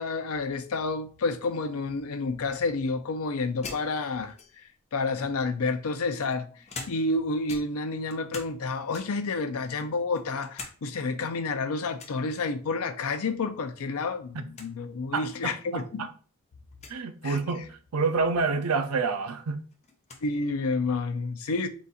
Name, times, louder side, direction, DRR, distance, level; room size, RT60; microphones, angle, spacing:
voice 1, 0.0-4.3 4.9-6.5 6.9-16.1 17.2-17.4 20.2-21.7, left 3 dB, 70° left, 0.5 m, -29 dB
sound 1, 3.6-4.8 5.6-7.2 7.5-8.6 8.9-9.3 9.8-10.8 11.1-11.2 12.0-12.2 13.7-14.0 14.3-14.4 14.5-14.7 15.5-15.6 16.7-17.0 18.7-18.8 19.1-20.3, left 4 dB, 30° left, 0.7 m, -44 dB
voice 2, 15.1-16.1 16.9-19.6, right 4 dB, 75° right, 0.5 m, -28 dB
4.0 x 2.4 x 4.0 m
head